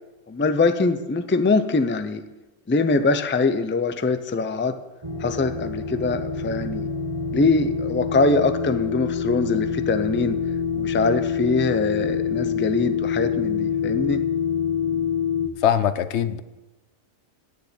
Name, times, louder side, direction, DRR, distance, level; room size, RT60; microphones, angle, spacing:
voice 1, 0.3-2.2 2.7-4.8 5.2-6.9 7.3-10.4 10.8-14.2, left 3 dB, 15° left, 0.4 m, -23 dB
sound 1, 5.0-15.5, left 6 dB, 30° right, 1.1 m, -26 dB
voice 2, 15.6-16.4, left 9 dB, 80° left, 0.9 m, -21 dB
9.4 x 7.3 x 9.1 m
omnidirectional pair, 1.1 m